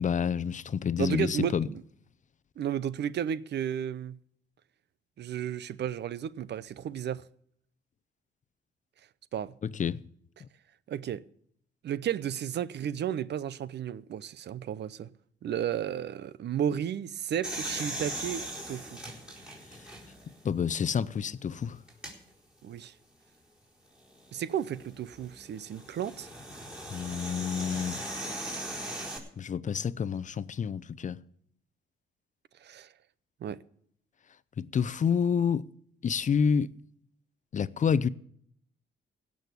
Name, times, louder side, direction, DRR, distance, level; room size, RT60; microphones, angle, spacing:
voice 1, 0.0-1.7 9.6-10.0 20.4-21.8 26.9-28.0 29.4-31.2 34.6-35.7 36.0-36.7 37.5-38.1, left 7 dB, 40° left, 0.6 m, -28 dB
voice 2, 1.0-1.8 2.6-4.2 5.2-7.2 9.3-9.5 10.9-11.2 11.8-15.1 15.4-19.0 22.6-22.9 24.3-26.3 32.6-32.9 33.4-33.6, right 9 dB, 60° right, 0.7 m, -33 dB
sound 1, 17.4-20.3 20.9-21.0 21.9-22.1 24.3-29.2, right 1 dB, 5° right, 4.3 m, -39 dB
16.5 x 6.4 x 8.2 m
cardioid pair, 90°, 20 cm